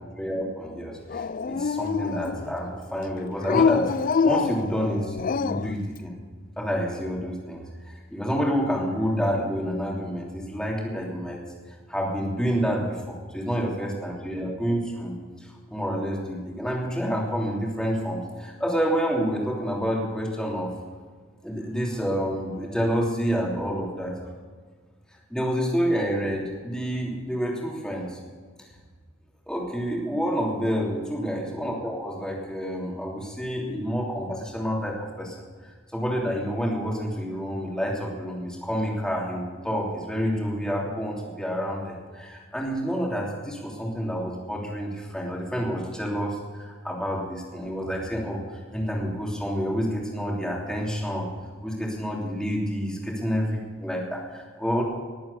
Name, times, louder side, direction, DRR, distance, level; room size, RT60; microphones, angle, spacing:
voice 1, 0.2-6.1 6.6-11.4 11.9-20.7 21.4-24.2 25.3-28.2 29.5-35.3 35.6-51.3 51.6-54.8, equal, 5° left, -2 dB, 3.0 m, -28 dB
Dog, 1.1-2.6 3.4-5.8, left 5 dB, 40° left, 0.3 m, -25 dB
20.0 x 8.6 x 6.9 m, 1.5 s
head